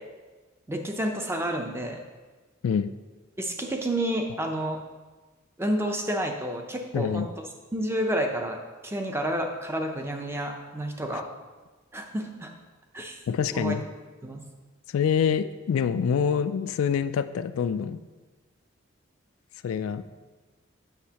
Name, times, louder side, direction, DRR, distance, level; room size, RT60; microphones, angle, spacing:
voice 1, 0.7-2.0 3.4-4.8 5.6-7.3 7.7-8.6 8.8-11.3 11.9-12.5 12.9-13.2 13.5-13.7 14.2-14.4, right 1 dB, 10° right, 3 dB, 0.5 m, -29 dB
voice 2, 6.9-7.3 13.3-13.8 14.9-18.0 19.6-20.0, left 7 dB, 80° left, 12 dB, 0.3 m, -26 dB
8.1 x 6.4 x 2.9 m, 1.3 s
head